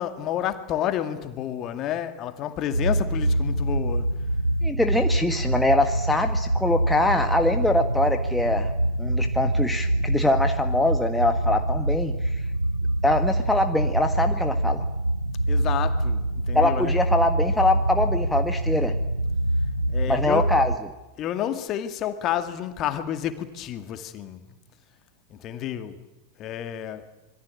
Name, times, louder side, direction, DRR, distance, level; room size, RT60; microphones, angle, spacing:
voice 1, 0.0-4.1 15.5-16.9 19.9-20.5 21.2-24.5 25.4-26.0 26.4-27.0, left 11 dB, 35° left, 2.3 m, -30 dB
sound 1, 2.7-20.8, right 1 dB, 85° right, 0.9 m, -25 dB
voice 2, 4.6-8.7 9.0-12.2 13.0-14.8 16.5-19.0 20.1-20.7, left 2 dB, 5° left, 1.5 m, -23 dB
26.0 x 22.5 x 8.6 m
figure-of-eight pair, 90°, 0 cm